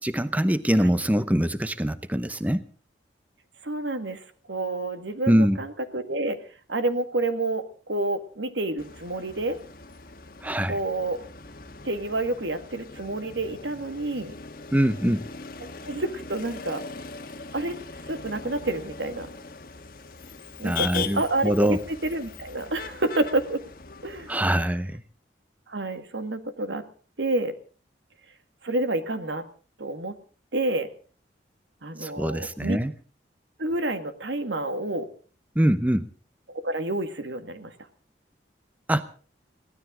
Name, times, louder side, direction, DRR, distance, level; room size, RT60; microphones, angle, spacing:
voice 1, 0.0-2.6 5.3-5.6 10.4-10.8 14.7-15.3 20.6-21.8 24.3-25.0 32.0-32.9 35.6-36.1 38.9-39.0, equal, 10° right, 12 dB, 0.7 m, -23 dB
voice 2, 3.6-4.2 4.5-6.4 6.7-9.6 10.7-11.2 11.8-14.3 15.6-16.8 17.5-17.8 18.1-19.3 20.6-23.6 24.0-24.3 25.7-26.8 27.2-27.6 28.6-29.4 29.8-30.2 30.5-30.9 31.8-32.8 33.6-35.1 36.5-37.7, right 2 dB, 85° right, 9 dB, 1.9 m, -29 dB
Motor vehicle (road), 8.8-24.5, left 5 dB, 50° left, 1.4 m, -40 dB
23.0 x 16.5 x 3.8 m, 0.40 s
head